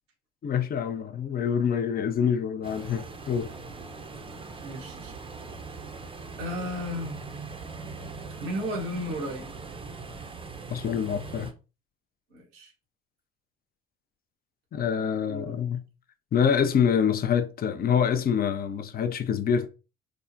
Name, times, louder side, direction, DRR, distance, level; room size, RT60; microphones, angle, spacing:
voice 1, 0.4-3.5 10.7-11.5 14.7-15.8 16.3-19.7, left 7 dB, 30° left, 0.4 m, -26 dB
sound 1, 2.6-11.5, right 4 dB, 20° right, 0.6 m, -41 dB
voice 2, 4.6-5.1 6.4-7.2 8.2-9.5 12.3-12.7 15.3-15.5, equal, 85° right, 1.0 m, -34 dB
3.4 x 2.0 x 2.6 m
hypercardioid pair, 60°, 29 cm